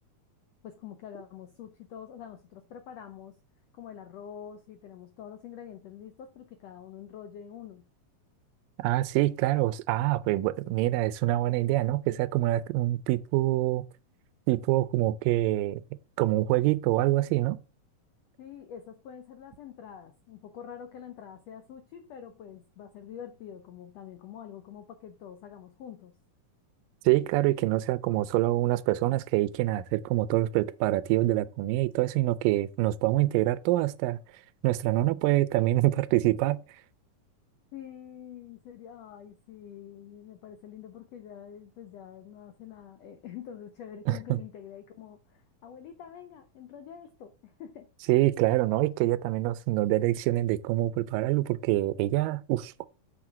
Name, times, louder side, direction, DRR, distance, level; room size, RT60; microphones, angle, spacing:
voice 1, 0.6-3.4 3.7-7.8 10.6-10.7 18.4-26.1 37.7-47.9, left 9 dB, 80° left, 1.4 m, -46 dB
voice 2, 8.8-13.8 14.5-15.8 16.2-17.6 27.1-34.2 34.6-36.6 44.1-44.4 48.1-52.9, right 16 dB, 85° right, 2.2 m, -25 dB
7.6 x 4.3 x 5.9 m
omnidirectional pair, 3.9 m